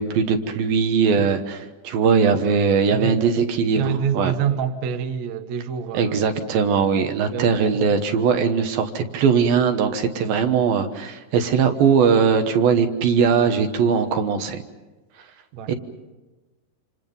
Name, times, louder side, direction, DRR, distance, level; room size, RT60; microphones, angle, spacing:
voice 1, 0.0-3.8 4.2-4.3 5.9-14.6 15.7-15.8, right 6 dB, 80° right, 3.0 m, -20 dB
voice 2, 2.9-6.2 7.3-8.0 15.5-15.7, right 7 dB, 65° right, 2.1 m, -27 dB
28.0 x 27.5 x 5.4 m
omnidirectional pair, 4.2 m